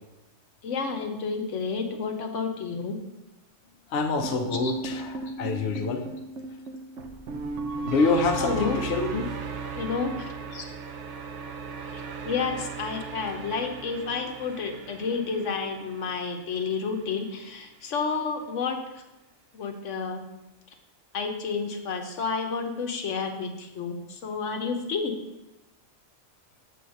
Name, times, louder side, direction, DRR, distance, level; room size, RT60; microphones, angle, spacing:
voice 1, 0.6-3.0 4.5-4.8 8.2-8.8 9.8-10.3 10.5-10.7 11.9-19.0 19.5-20.2 21.1-25.1, left 5 dB, 85° left, 4 dB, 1.2 m, -30 dB
voice 2, 3.9-6.1 7.8-9.3, left 4 dB, 65° left, 4 dB, 0.9 m, -26 dB
sound 1, 4.2-16.4, right 4 dB, 80° right, 1.0 m, -36 dB
7.1 x 4.2 x 6.4 m, 0.97 s
omnidirectional pair, 1.2 m